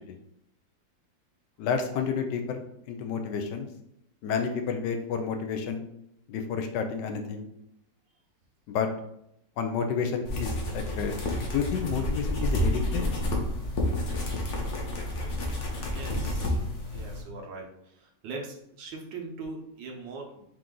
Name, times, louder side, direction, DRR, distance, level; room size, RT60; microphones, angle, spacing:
voice 1, 1.6-3.7 4.2-5.8 6.3-7.5 8.7-8.9 9.6-11.1 11.5-13.0, left 6 dB, 75° left, 5 dB, 1.2 m, -30 dB
sound 1, 10.3-17.2, left 1 dB, 50° left, 0.9 m, -30 dB
voice 2, 15.9-16.5 16.9-17.7 18.2-20.4, right 3 dB, 80° right, 1 dB, 1.5 m, -40 dB
4.5 x 2.5 x 3.7 m, 0.76 s
omnidirectional pair, 2.0 m